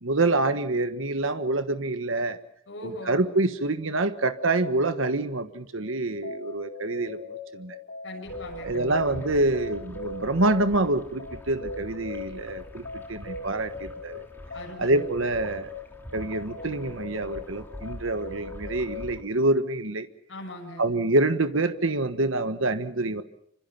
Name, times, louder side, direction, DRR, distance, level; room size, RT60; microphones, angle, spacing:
voice 1, 0.0-2.4 2.8-7.2 7.5-7.8 8.6-12.8 13.1-14.3 14.8-15.7 16.1-20.1 20.8-23.2, right 2 dB, 90° right, 10 dB, 1.4 m, -26 dB
voice 2, 2.7-3.2 8.0-9.3 14.5-15.1 20.3-20.8, left 1 dB, 75° left, 0 dB, 6.9 m, -40 dB
sound 1, 5.8-19.0, left 3 dB, 60° left, 3.6 m, -40 dB
sound 2, 8.3-19.2, equal, 10° left, 3.1 m, -45 dB
26.5 x 25.5 x 5.8 m, 0.73 s
head